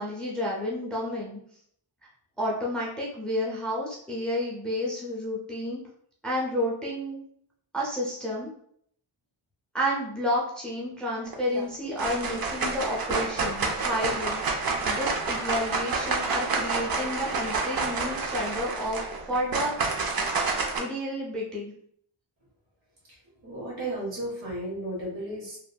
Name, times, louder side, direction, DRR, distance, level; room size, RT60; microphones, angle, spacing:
voice 1, 0.0-1.4 2.4-5.8 6.2-7.2 7.7-8.5 9.7-14.4 14.8-19.0 19.3-20.0 20.8-21.7, left 1 dB, ahead, -4 dB, 0.4 m, -30 dB
sound 1, 11.3-11.6 12.0-20.8, right 4 dB, 50° right, 0.5 m, -29 dB
voice 2, 23.4-25.6, right 1 dB, 75° right, -5 dB, 1.5 m, -34 dB
2.8 x 2.5 x 2.2 m, 0.65 s
wide cardioid pair, 180°, 47 cm